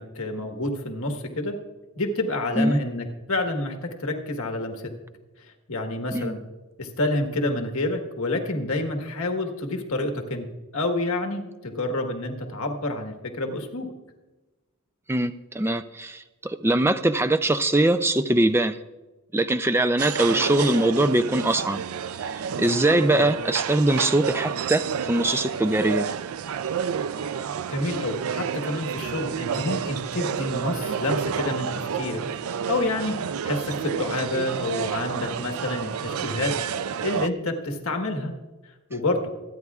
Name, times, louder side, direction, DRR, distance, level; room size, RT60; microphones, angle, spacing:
voice 1, 0.0-1.5 2.0-4.9 5.7-6.4 6.8-10.5 10.7-13.9 23.1-23.2 27.7-31.7 31.9-32.2 32.7-33.1 33.4-36.5 37.0-38.3 38.9-39.3, left 2 dB, 75° left, 4 dB, 1.4 m, -28 dB
voice 2, 15.1-18.8 19.3-21.8 22.2-26.1, right 1 dB, 10° right, 10 dB, 0.4 m, -22 dB
sound 1, 20.0-37.3, right 7 dB, 75° right, 0.4 m, -30 dB
25.5 x 9.3 x 2.4 m, 1.1 s
head